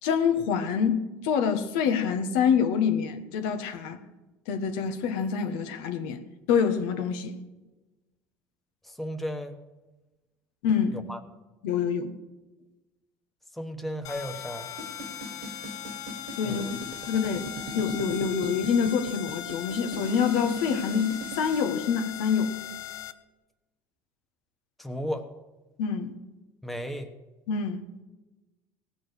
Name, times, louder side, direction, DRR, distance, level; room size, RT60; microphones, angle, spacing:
voice 1, 0.0-4.0 4.5-6.2 6.5-7.3 10.6-11.0 11.6-12.1 16.4-22.6 25.8-26.1 27.5-27.8, left 7 dB, 85° left, 1.5 m, -26 dB
voice 2, 8.8-9.6 10.9-11.2 13.5-14.7 16.4-16.7 24.8-25.3 26.6-27.1, equal, ahead, 1.1 m, -34 dB
sound 1, 14.0-23.1, left 12 dB, 50° left, 0.8 m, -39 dB
sound 2, 14.8-21.6, right 2 dB, 65° right, 1.5 m, -40 dB
17.5 x 7.0 x 6.7 m
cardioid pair, 135°, 7 cm